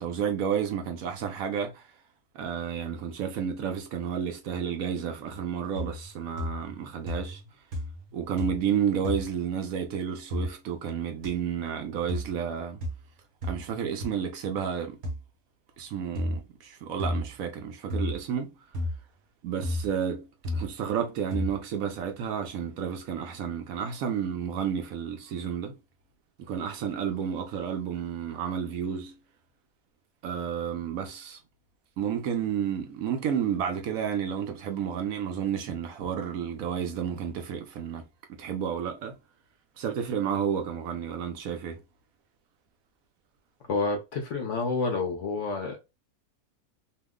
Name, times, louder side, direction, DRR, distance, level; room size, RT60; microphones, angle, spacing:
voice 1, 0.0-1.9 2.3-7.4 8.1-12.8 13.5-15.0 15.8-18.5 19.4-20.3 20.5-25.8 26.4-29.1 30.2-31.4 32.0-38.0 38.3-39.2 39.8-41.8, right 8 dB, 70° right, 0.9 m, -31 dB
sound 1, 5.7-6.1 6.4-6.8 7.1-7.5 7.7-8.1 8.4-8.7 9.0-9.3 10.3-10.5 11.2-11.3 12.1-12.3 12.8-13.0 13.4-13.6 14.0-14.1 15.0-15.2 16.2-16.4 17.0-17.3 17.9-18.2 18.7-19.0 19.6-19.9 20.4-20.7 21.3-21.6, left 1 dB, 50° right, 1.1 m, -32 dB
voice 2, 43.7-45.8, left 3 dB, 65° left, 0.8 m, -29 dB
2.8 x 2.0 x 3.5 m
omnidirectional pair, 1.7 m